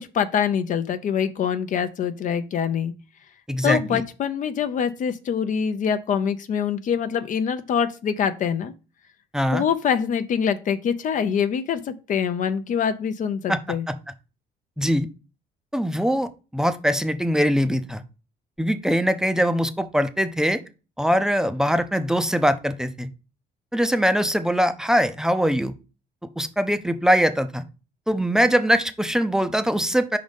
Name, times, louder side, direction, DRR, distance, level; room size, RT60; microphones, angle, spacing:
voice 1, 0.0-2.9 3.6-8.7 9.5-13.9, left 7 dB, 50° left, 10 dB, 0.6 m, -24 dB
voice 2, 3.5-4.0 9.3-9.6 13.5-13.6 13.9-14.0 14.8-15.1 15.7-18.0 18.6-20.6 21.0-23.1 23.7-25.7 26.4-27.6 28.1-30.2, equal, 5° right, 10 dB, 0.6 m, -22 dB
5.2 x 3.9 x 5.1 m, 0.32 s
cardioid pair, 110°, 17 cm